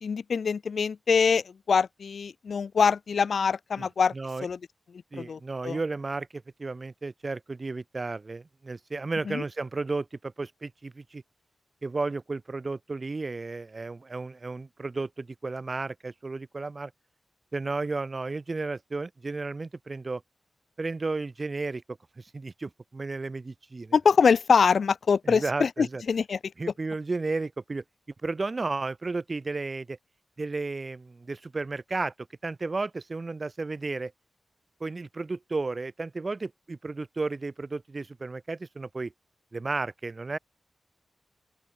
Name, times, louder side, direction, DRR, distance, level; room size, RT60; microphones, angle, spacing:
voice 1, 0.0-4.1 4.4-4.6 5.2-5.8 9.3-9.4 23.9-26.4, left 6 dB, 75° left, 1.4 m, -24 dB
voice 2, 3.8-4.5 5.1-11.2 11.8-16.9 17.5-20.2 20.8-21.8 22.2-23.9 25.2-26.0 26.6-27.8 28.2-30.0 30.4-32.1 32.4-34.1 34.8-39.1 39.5-40.4, right 3 dB, 35° right, 2.4 m, -33 dB
open air
wide cardioid pair, 110°, 0 cm